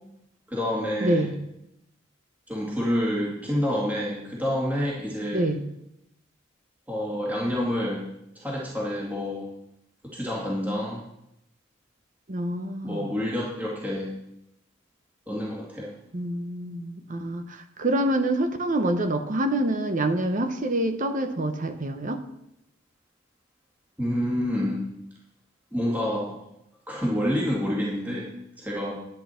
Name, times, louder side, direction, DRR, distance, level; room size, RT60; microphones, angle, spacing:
voice 1, 0.5-1.3 2.5-5.5 6.9-8.0 8.4-9.5 10.0-11.0 12.8-14.1 15.3-15.9 24.0-24.9 25.7-26.4 26.9-28.3 28.6-28.9, equal, 10° right, -5 dB, 2.1 m, -28 dB
voice 2, 1.0-1.4 5.3-5.6 12.3-13.1 16.1-22.2, right 1 dB, 45° right, 7 dB, 1.0 m, -26 dB
10.5 x 9.9 x 4.4 m, 0.82 s
head